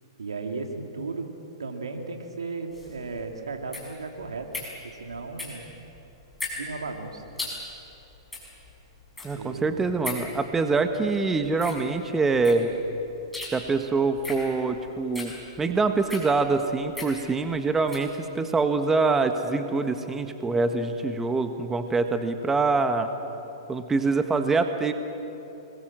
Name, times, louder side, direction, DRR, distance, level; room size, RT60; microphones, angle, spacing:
voice 1, 0.2-1.3 1.6-4.5 4.8-5.6 6.5-7.3 9.3-10.0, right 3 dB, 90° right, 4 dB, 2.9 m, -35 dB
sound 1, 2.7-18.1, left 2 dB, 5° left, 6.2 m, -40 dB
voice 2, 9.2-12.7 13.5-15.3 15.6-23.1 23.7-24.9, right 3 dB, 10° right, 7 dB, 1.4 m, -25 dB
26.5 x 21.5 x 7.6 m, 3.0 s
hypercardioid pair, 125°, 3 cm